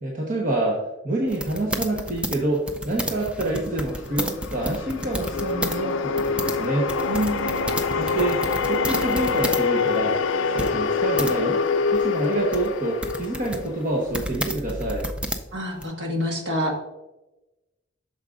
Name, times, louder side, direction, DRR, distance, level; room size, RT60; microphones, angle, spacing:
voice 1, 0.0-6.9 8.0-10.2 10.5-11.6 11.9-15.1, right 2 dB, 40° right, -2 dB, 1.0 m, -27 dB
sound 1, 1.3-5.8 6.0-9.7 9.9-10.0 10.6-11.3 11.9-15.8, right 1 dB, 5° right, 0.4 m, -31 dB
sound 2, 3.8-14.1, left 5 dB, 70° left, 0.4 m, -25 dB
voice 2, 7.1-7.6 15.5-16.8, equal, 60° right, 1 dB, 1.6 m, -27 dB
8.8 x 6.3 x 2.5 m, 1.0 s
head